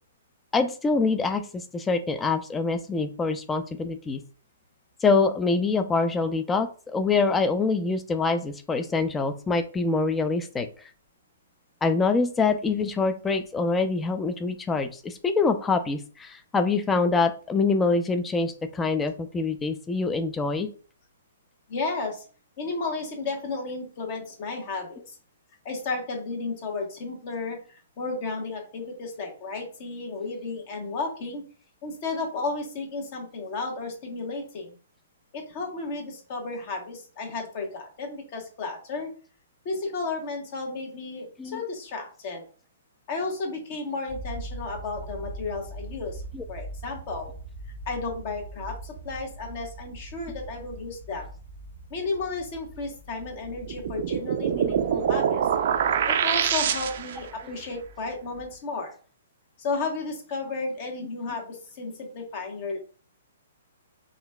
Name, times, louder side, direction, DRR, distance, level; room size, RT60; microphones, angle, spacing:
voice 1, 0.5-1.4 1.7-4.2 5.0-10.7 11.8-20.7 41.4-41.6 46.3-46.4 57.4-57.6, left 4 dB, 15° left, 8 dB, 0.4 m, -25 dB
voice 2, 21.7-22.2 22.6-25.2 25.6-31.4 31.8-34.8 35.3-39.1 39.6-42.4 43.1-46.2 46.5-47.3 47.9-51.3 51.9-55.5 56.1-58.9 59.6-62.8, left 3 dB, 45° left, 2 dB, 1.2 m, -33 dB
sound 1, 44.1-58.6, right 2 dB, 85° left, 1.0 m, -42 dB
sound 2, 53.7-57.3, right 8 dB, 55° right, 0.4 m, -25 dB
3.8 x 2.4 x 2.2 m, 0.39 s
hypercardioid pair, 130°, 0 cm